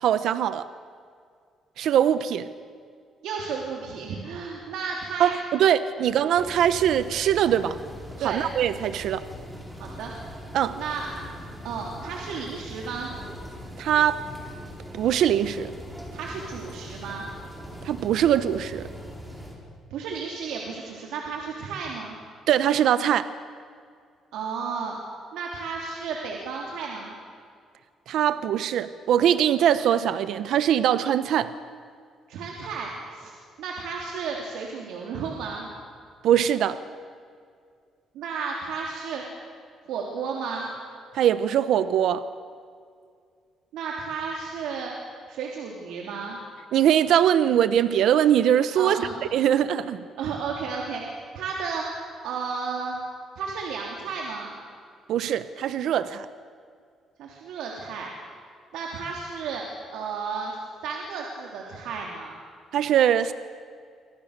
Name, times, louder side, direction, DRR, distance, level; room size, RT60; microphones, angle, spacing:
voice 1, 0.0-0.7 1.8-2.5 5.2-7.8 8.2-9.2 10.5-10.7 13.8-14.2 14.9-15.7 17.8-18.9 22.5-23.3 28.1-31.5 36.2-36.8 41.1-42.2 46.7-49.0 49.3-50.0 55.1-56.3 62.7-63.3, right 10 dB, 60° right, 13 dB, 0.9 m, -22 dB
voice 2, 3.2-5.4 8.2-8.4 9.8-10.1 10.7-11.1 11.6-13.1 16.1-17.3 19.9-22.1 24.3-25.0 25.3-27.2 32.3-35.7 38.1-39.2 39.9-40.7 43.7-44.9 45.3-46.4 48.8-49.1 50.2-51.8 52.2-53.0 53.4-54.5 57.2-58.1 58.7-59.6 59.9-60.6 60.8-62.4, right 5 dB, 85° right, -1 dB, 3.3 m, -33 dB
sound 1, 6.3-19.6, equal, 5° right, 4.2 m, -41 dB
28.0 x 25.0 x 6.7 m, 2.2 s
cardioid pair, 175°, 0 cm